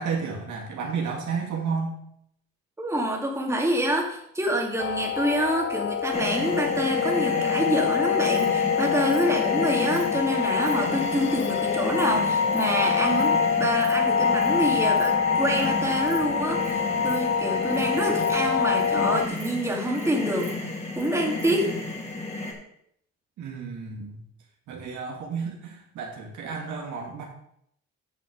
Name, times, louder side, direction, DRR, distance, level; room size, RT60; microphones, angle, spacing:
voice 1, 0.0-2.0 23.4-24.2 24.7-27.2, right 5 dB, 75° right, 0 dB, 2.6 m, -32 dB
voice 2, 2.8-20.5 21.0-21.8, right 1 dB, 10° right, 0 dB, 2.2 m, -27 dB
sound 1, 4.8-19.3, left 7 dB, 40° left, 0.4 m, -25 dB
sound 2, 6.1-22.5, left 2 dB, 20° left, 2.6 m, -32 dB
Insect, 8.0-8.5 9.1-9.2 9.9-10.1 10.6-10.7 11.1-11.5 11.9-12.1 12.3-12.6 13.2-13.3 13.6-13.9 14.2-14.5 14.8-15.1 15.3-15.7 16.1-16.3 16.6-16.7 17.0-17.2 17.6-17.8 18.1-19.0 19.3-19.5 19.8-20.1 20.4-21.1 21.4-21.5, right 5 dB, 50° right, 2.8 m, -49 dB
8.6 x 6.4 x 5.2 m, 0.72 s
cardioid pair, 90°, 30 cm